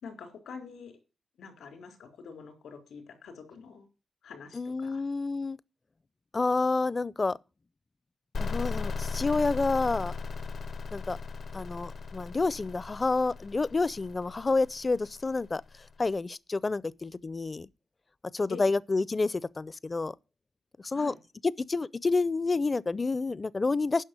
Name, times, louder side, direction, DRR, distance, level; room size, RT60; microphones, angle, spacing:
voice 1, 0.0-1.0 1.4-3.9 4.2-5.0 18.5-18.7 20.9-21.2, left 6 dB, 85° left, 3.7 m, -45 dB
voice 2, 4.5-5.6 6.3-7.4 8.4-10.1 10.9-11.2 11.5-15.6 16.0-17.7 18.3-20.1 20.8-21.1 21.4-24.0, left 3 dB, 35° left, 0.5 m, -29 dB
sound 1, 8.3-15.9, left 4 dB, 65° left, 0.8 m, -37 dB
10.0 x 6.0 x 8.2 m
supercardioid pair, 50°, 0 cm